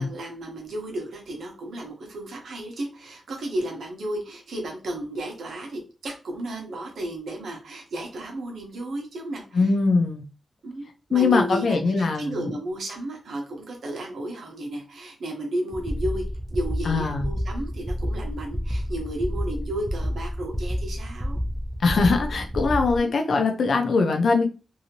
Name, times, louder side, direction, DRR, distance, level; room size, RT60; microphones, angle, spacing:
voice 1, 0.0-9.7 10.6-16.2 16.5-21.4 23.0-23.1, right 1 dB, 80° right, 1 dB, 1.0 m, -33 dB
voice 2, 9.5-10.2 11.1-12.5 16.9-17.3 21.8-24.5, left 4 dB, 65° left, 4 dB, 0.6 m, -22 dB
sound 1, 15.7-23.0, equal, 10° right, 0.5 m, -29 dB
2.7 x 2.7 x 2.8 m, 0.33 s
wide cardioid pair, 150°, 0 cm